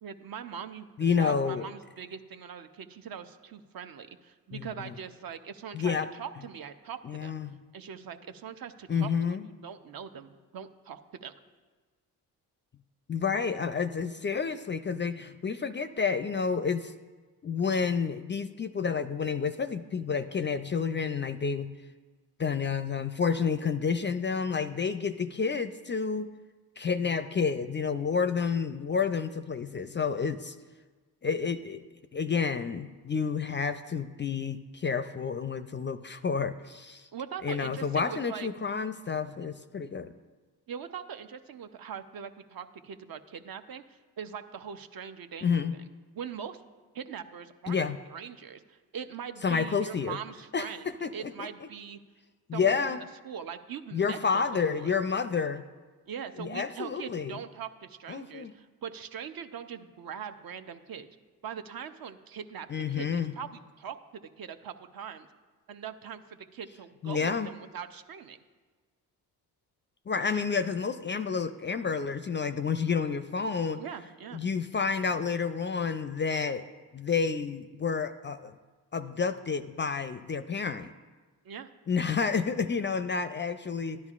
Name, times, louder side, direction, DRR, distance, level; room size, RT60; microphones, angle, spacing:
voice 1, 0.0-0.9 1.2-7.3 7.7-9.4 9.6-11.3 37.1-38.5 40.7-43.8 44.2-45.5 46.1-46.6 46.9-47.8 48.1-52.0 52.5-53.0 53.2-54.2 54.5-54.9 56.1-61.1 61.4-62.7 62.9-64.0 64.4-65.3 65.7-68.4 73.8-74.4 81.4-81.7, right 7 dB, 55° right, 9 dB, 0.8 m, -41 dB
voice 2, 1.0-1.7 4.5-4.9 5.7-6.1 7.0-7.5 8.9-9.5 13.1-16.9 17.4-21.7 22.4-26.3 26.8-30.5 31.2-31.8 32.1-37.1 37.4-40.1 45.4-45.8 47.7-48.0 49.4-50.2 50.5-51.5 52.5-53.0 53.9-55.6 56.4-57.4 58.1-58.5 62.7-63.3 67.0-67.5 70.1-73.8 74.3-76.7 76.9-78.5 78.9-80.9 81.9-84.0, left 5 dB, 25° left, 11 dB, 0.4 m, -30 dB
12.0 x 10.5 x 2.5 m, 1.4 s
hypercardioid pair, 50°, 43 cm